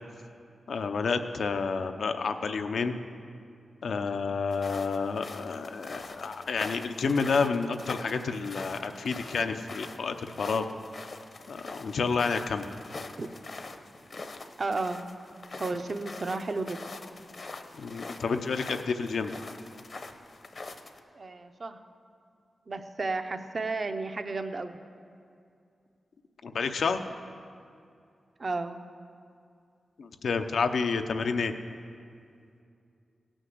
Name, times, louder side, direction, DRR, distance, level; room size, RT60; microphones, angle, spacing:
voice 1, 0.7-2.9 3.8-10.7 11.5-12.7 17.7-19.3 26.4-27.0 30.0-31.5, left 5 dB, 80° left, 7 dB, 0.7 m, -29 dB
sound 1, 4.5-21.0, left 3 dB, 50° left, 0.8 m, -44 dB
voice 2, 13.2-13.5 14.6-15.0 15.6-16.8 21.1-21.8 22.7-24.8 28.4-28.8, right 3 dB, 45° right, 8 dB, 0.7 m, -33 dB
17.0 x 6.3 x 7.9 m, 2.4 s
wide cardioid pair, 90°, 0 cm